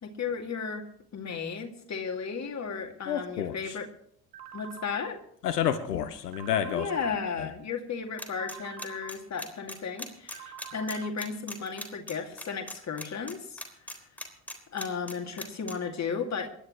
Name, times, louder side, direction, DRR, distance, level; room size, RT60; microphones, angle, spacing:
voice 1, 0.0-3.9 4.5-5.2 6.7-13.6 14.7-16.5, left 5 dB, 35° left, 3 dB, 2.4 m, -34 dB
voice 2, 3.1-3.8 5.4-6.9 7.4-7.5, left 9 dB, 80° left, 13 dB, 0.8 m, -29 dB
sound 1, 4.3-5.1 6.3-7.1 8.3-9.1 10.3-11.1, right 9 dB, 75° right, 1.2 m, -45 dB
sound 2, 8.2-15.7, left 1 dB, 5° left, 3.7 m, -39 dB
27.0 x 11.5 x 3.1 m, 0.67 s
figure-of-eight pair, 50°, 46 cm